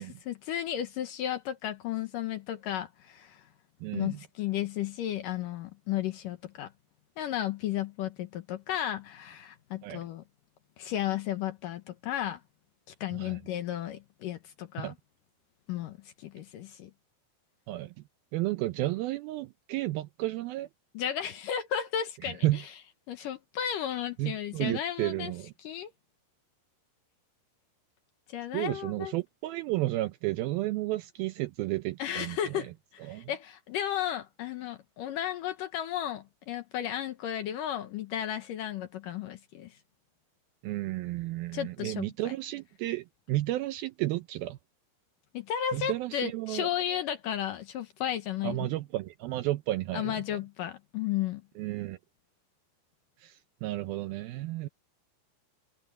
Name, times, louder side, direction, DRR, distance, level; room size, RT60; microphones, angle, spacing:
voice 1, 0.0-3.4 3.9-6.7 7.2-10.2 10.8-12.4 13.0-14.9 15.7-16.9 20.9-22.6 23.1-25.3 25.6-25.9 28.3-29.1 32.0-39.7 41.5-42.1 45.3-48.7 49.9-51.4, left 10 dB, 70° left, 2.2 m, -34 dB
voice 2, 3.8-4.2 9.8-10.0 13.1-13.4 14.8-14.9 17.7-17.9 18.3-20.7 22.2-22.6 24.2-25.5 28.5-32.7 33.0-33.3 40.6-44.6 45.7-46.7 48.4-50.2 51.6-52.0 53.2-54.7, right 17 dB, 85° right, 2.1 m, -32 dB
omnidirectional pair, 5.0 m